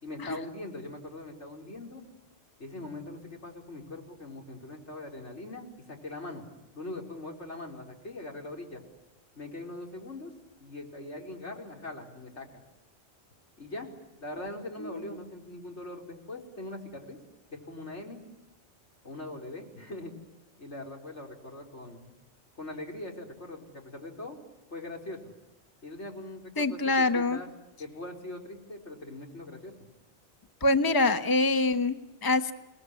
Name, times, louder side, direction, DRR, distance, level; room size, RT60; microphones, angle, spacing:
voice 1, 0.0-2.0 2.6-6.4 6.7-8.8 9.3-10.3 10.6-12.6 13.6-13.9 14.2-17.2 17.5-18.2 19.0-20.1 20.6-22.1 22.6-24.4 24.7-25.3 25.8-27.5 27.8-29.7, left 2 dB, 80° left, 2 dB, 5.0 m, -41 dB
voice 2, 26.6-27.4 30.6-32.5, left 2 dB, 20° left, 9 dB, 1.1 m, -25 dB
29.5 x 19.5 x 9.8 m, 1.0 s
omnidirectional pair, 1.2 m